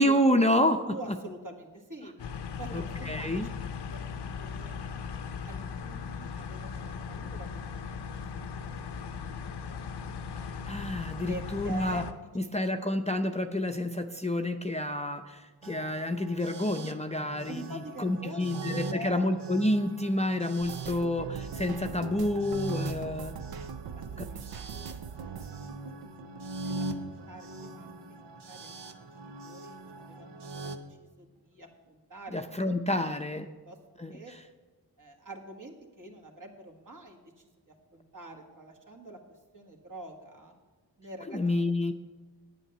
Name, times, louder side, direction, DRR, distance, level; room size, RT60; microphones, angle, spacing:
voice 1, 0.0-1.2 2.7-3.5 10.6-12.0 12.4-23.3 24.2-24.3 32.3-33.5 34.0-34.1 41.3-41.9, left 1 dB, 15° left, 6 dB, 0.5 m, -29 dB
voice 2, 0.8-2.1 2.6-3.4 3.8-4.7 5.4-9.5 11.3-13.0 17.5-19.3 23.9-24.4 24.7-25.6 26.5-27.9 28.2-33.1 33.7-33.8 34.1-34.3 35.0-39.2 39.5-40.5 41.0-41.7, right 2 dB, 50° right, 2 dB, 1.8 m, -46 dB
sound 1, 2.2-12.1, left 6 dB, 80° left, 0.7 m, -38 dB
sound 2, 15.6-30.8, right 2 dB, 85° right, 0.9 m, -41 dB
sound 3, 20.6-27.4 27.7-28.7 29.0-29.4 29.7-29.9, right 7 dB, 65° right, 0.5 m, -42 dB
9.1 x 9.1 x 6.7 m, 1.2 s
wide cardioid pair, 70°, 40 cm